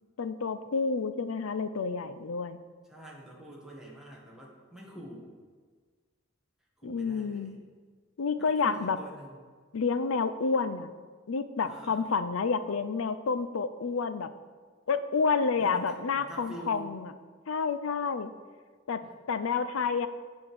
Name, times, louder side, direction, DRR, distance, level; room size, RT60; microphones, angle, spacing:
voice 1, 0.2-2.6 6.8-7.5 8.2-9.0 9.7-10.9 11.3-14.3 14.9-17.1 17.5-18.3 18.9-20.1, left 5 dB, 80° left, 12 dB, 0.5 m, -29 dB
voice 2, 2.9-5.3 6.8-7.6 8.4-9.4 11.6-12.0 15.5-16.9 19.0-19.1, right 1 dB, 5° right, -4 dB, 1.6 m, -46 dB
8.7 x 5.2 x 6.3 m, 1.5 s
head